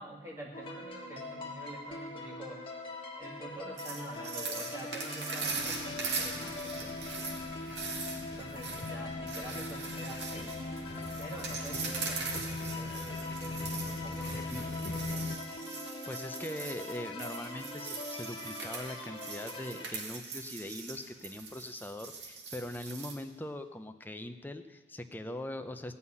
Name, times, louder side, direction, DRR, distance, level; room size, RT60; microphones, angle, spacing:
voice 1, 0.0-2.6 3.2-7.1 8.4-10.5 11.2-13.5 13.8-14.7, right 1 dB, 15° right, -2 dB, 2.0 m, -47 dB
sound 1, 0.5-19.9, left 2 dB, 30° left, 1.7 m, -42 dB
sound 2, 3.8-23.1, right 4 dB, 70° right, 2.1 m, -41 dB
sound 3, 5.4-15.4, left 3 dB, 65° left, 0.9 m, -41 dB
voice 2, 15.8-25.9, left 1 dB, 10° left, 7 dB, 0.6 m, -41 dB
15.0 x 5.6 x 9.7 m, 1.4 s
head